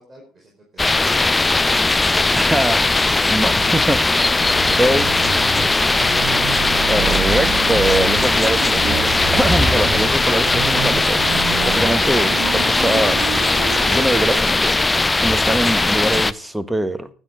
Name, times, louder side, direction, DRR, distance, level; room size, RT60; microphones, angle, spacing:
voice 1, 0.0-1.7 4.6-6.3, right 2 dB, 25° right, 4.5 m, -42 dB
sound 1, 0.8-16.3, left 2 dB, 15° left, 0.6 m, -18 dB
voice 2, 2.3-2.9 3.3-4.4 4.8-5.0 6.8-13.2 13.9-17.1, right 1 dB, 5° right, 1.5 m, -23 dB
sound 2, 2.4-14.5, right 14 dB, 65° right, 0.6 m, -30 dB
16.5 x 11.0 x 3.7 m
figure-of-eight pair, 55°, 0 cm